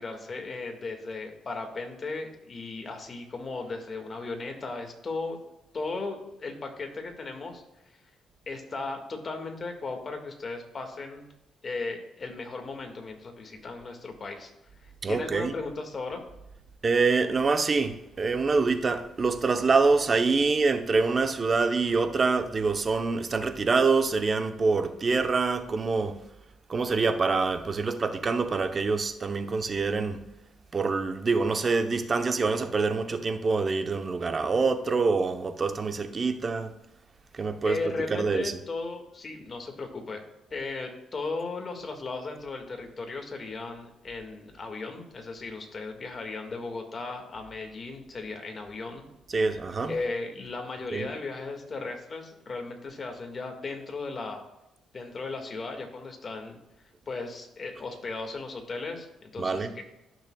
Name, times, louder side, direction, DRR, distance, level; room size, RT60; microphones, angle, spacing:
voice 1, 0.0-5.4 5.7-7.6 8.5-11.3 11.6-14.5 14.8-16.2 32.1-32.2 37.6-40.2 40.5-49.0 49.9-54.4 54.9-56.6 57.1-59.8, left 3 dB, 40° left, 1.9 m, -36 dB
voice 2, 15.0-15.5 16.8-26.2 26.7-30.2 30.7-36.7 37.3-37.8 38.1-38.5 49.3-49.9 50.9-51.1 59.4-59.7, right 4 dB, 35° right, 0.8 m, -25 dB
14.0 x 6.3 x 2.3 m
cardioid pair, 90°, 0 cm